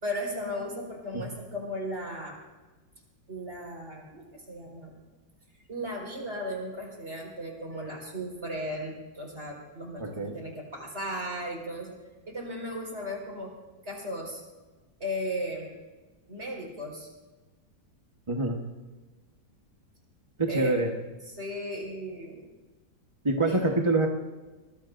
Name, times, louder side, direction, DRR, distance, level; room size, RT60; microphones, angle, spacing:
voice 1, 0.0-2.4 3.3-5.0 5.7-12.0 12.3-13.5 13.8-14.4 15.0-15.7 16.3-17.1 20.5-20.7 21.3-22.5 23.5-23.8, equal, 35° right, -1 dB, 4.8 m, -36 dB
voice 2, 10.0-10.4 18.3-18.6 20.4-20.9 23.2-24.1, right 2 dB, 20° right, 1 dB, 1.0 m, -25 dB
23.5 x 21.0 x 2.6 m, 1.2 s
omnidirectional pair, 1.9 m